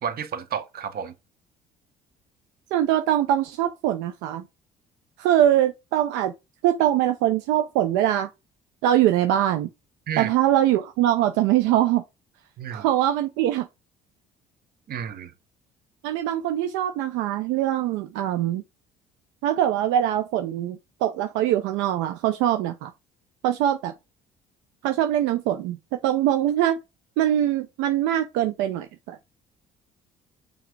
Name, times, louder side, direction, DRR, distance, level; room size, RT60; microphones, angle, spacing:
voice 1, 0.0-1.1 10.1-10.3 12.6-12.9 14.9-15.3, right 8 dB, 55° right, 1.1 m, -31 dB
voice 2, 2.7-4.4 5.2-6.3 6.6-8.3 8.8-9.7 10.2-12.0 12.7-13.7 16.0-18.6 19.4-22.9 23.4-23.9 24.8-26.8 27.2-29.2, right 12 dB, 80° right, 0.6 m, -23 dB
5.9 x 3.7 x 4.6 m
supercardioid pair, 70°, 19 cm